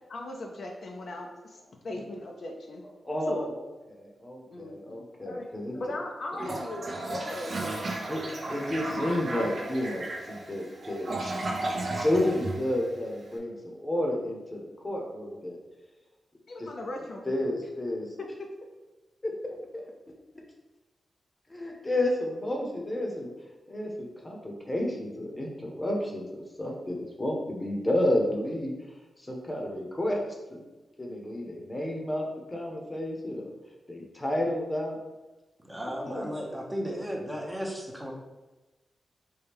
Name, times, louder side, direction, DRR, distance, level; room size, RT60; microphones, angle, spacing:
voice 1, 0.1-1.6 1.8-2.8 3.3-3.5 4.5-8.1 16.5-17.3 18.2-18.5, left 2 dB, 60° left, 2 dB, 0.4 m, -38 dB
voice 2, 3.0-3.6 3.9-5.8 8.1-8.2 8.5-11.4 11.9-15.6 16.6-16.7 17.3-18.1 19.2-19.8 21.5-23.3 23.7-28.7 29.2-30.2 30.5-30.6 31.0-33.5 33.9-35.0 35.9-36.3, left 1 dB, 20° left, 0 dB, 0.8 m, -31 dB
Toilet flush, 6.3-13.3, right 2 dB, 55° right, 0.6 m, -34 dB
voice 3, 35.6-38.1, equal, 10° right, -1 dB, 0.7 m, -35 dB
4.3 x 2.3 x 3.5 m, 1.1 s
cardioid pair, 90°, 0 cm